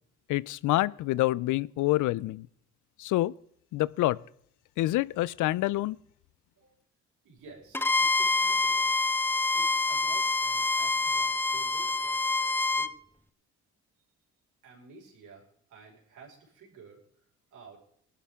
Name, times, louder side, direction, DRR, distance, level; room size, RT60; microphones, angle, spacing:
voice 1, 0.3-2.5 3.0-3.3 3.7-4.2 4.8-6.0, left 17 dB, 85° left, 0.5 m, -27 dB
voice 2, 7.2-9.0 9.5-12.2 12.7-12.9 14.6-17.0 17.5-17.9, right 4 dB, 80° right, 5.2 m, -52 dB
Bowed string instrument, 7.7-12.9, left 3 dB, 5° left, 0.6 m, -26 dB
19.5 x 11.5 x 3.6 m
cardioid pair, 90°, 30 cm